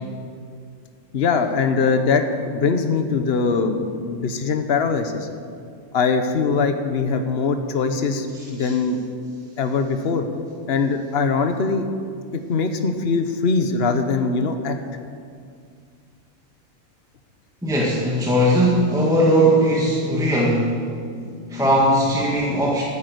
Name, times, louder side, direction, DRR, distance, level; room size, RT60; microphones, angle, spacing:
voice 1, 1.1-5.3 5.9-9.0 9.6-10.3 10.7-11.9 12.5-14.8, left 4 dB, 50° left, 7 dB, 1.3 m, -22 dB
voice 2, 17.6-20.8 21.2-22.8, equal, 5° right, -4 dB, 1.8 m, -19 dB
12.5 x 9.9 x 9.4 m, 2.2 s
omnidirectional pair, 1.4 m